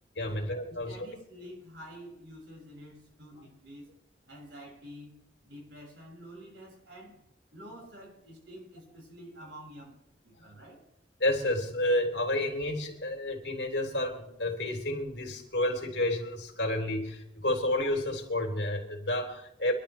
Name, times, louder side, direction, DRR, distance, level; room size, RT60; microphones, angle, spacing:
voice 1, 0.2-1.1 11.2-19.7, left 1 dB, 75° left, 2 dB, 3.5 m, -30 dB
voice 2, 0.7-3.8 4.3-5.2 5.4-7.2 7.5-10.0 10.2-10.8, equal, 85° right, -1 dB, 6.4 m, -48 dB
25.0 x 12.5 x 3.4 m, 0.78 s
head